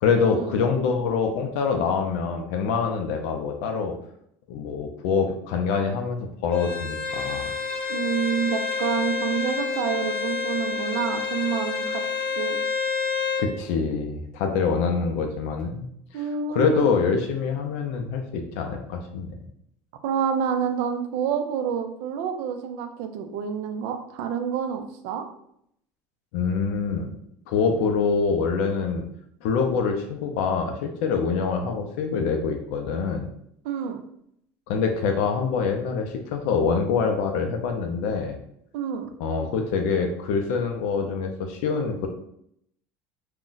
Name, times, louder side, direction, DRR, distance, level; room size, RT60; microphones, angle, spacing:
voice 1, 0.0-3.9 4.5-7.5 13.4-15.8 16.1-19.3 26.3-27.1 27.5-29.0 29.4-33.3 34.7-38.4 39.2-42.1, left 5 dB, 80° left, 4 dB, 0.4 m, -25 dB
Bowed string instrument, 6.5-13.5, left 5 dB, 15° left, 0.6 m, -28 dB
voice 2, 7.9-12.0 12.4-12.6 16.1-16.8 20.0-25.3 33.6-34.0 38.7-39.1, right 7 dB, 75° right, 7 dB, 0.4 m, -28 dB
2.4 x 2.1 x 3.7 m, 0.73 s
cardioid pair, 170°, 7 cm